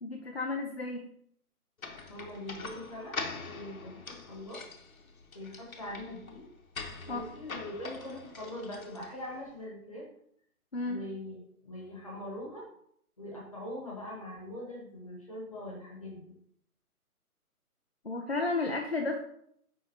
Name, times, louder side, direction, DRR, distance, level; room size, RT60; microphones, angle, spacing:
voice 1, 0.0-1.0 7.1-7.2 10.7-11.0 18.0-19.2, left 3 dB, 45° left, 2 dB, 0.6 m, -32 dB
sound 1, 1.8-9.4, left 4 dB, 65° left, 1.2 m, -43 dB
voice 2, 2.1-4.6 5.3-6.5 7.0-10.0 10.8-12.6 13.2-16.3, left 1 dB, 25° left, -3 dB, 1.3 m, -42 dB
10.0 x 3.8 x 2.8 m, 0.68 s
hypercardioid pair, 180°, 46 cm